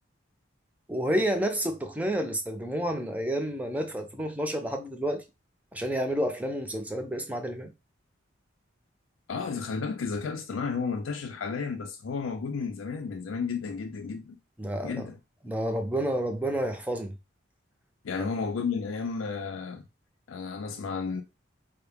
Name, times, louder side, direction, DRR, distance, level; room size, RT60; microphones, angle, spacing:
voice 1, 0.9-5.2 5.7-7.7 14.6-15.1 15.4-17.1 18.2-18.3, right 1 dB, 10° right, 0.4 m, -30 dB
voice 2, 9.3-14.4 14.8-15.1 18.0-19.8 20.3-21.2, left 5 dB, 85° left, 0.5 m, -32 dB
4.5 x 2.1 x 3.4 m
head